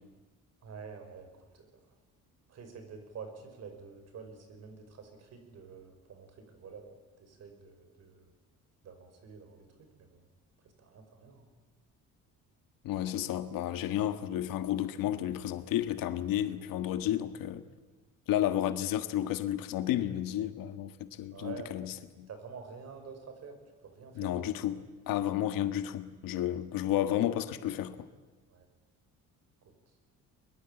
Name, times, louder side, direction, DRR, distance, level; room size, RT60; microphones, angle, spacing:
voice 1, 0.6-1.3 1.5-1.8 2.5-6.9 7.2-8.3 8.8-10.3 10.6-11.5 21.3-21.8 22.3-23.6 23.8-24.5 28.5-28.7 29.6-29.7, right 5 dB, 50° right, 5.2 m, -48 dB
voice 2, 12.8-17.6 18.3-22.3 24.1-28.0, left 12 dB, 80° left, 1.6 m, -32 dB
22.5 x 22.0 x 9.0 m
cardioid pair, 155°, 33 cm